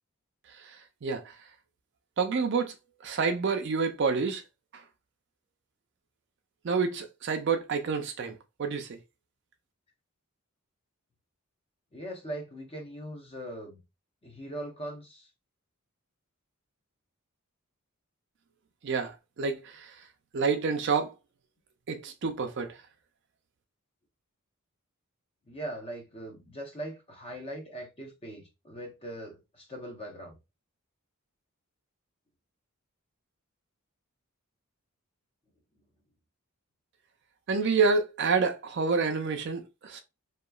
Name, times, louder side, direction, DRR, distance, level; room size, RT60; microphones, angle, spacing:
voice 1, 0.6-1.4 2.2-2.7 3.0-4.4 4.7-4.8 6.6-9.0 18.8-20.0 20.3-21.1 21.9-22.8 37.5-40.0, right 5 dB, 55° right, 0.4 m, -28 dB
voice 2, 11.9-13.8 14.2-15.3 25.5-30.4, right 1 dB, 25° left, 0.6 m, -40 dB
2.9 x 2.3 x 2.3 m
head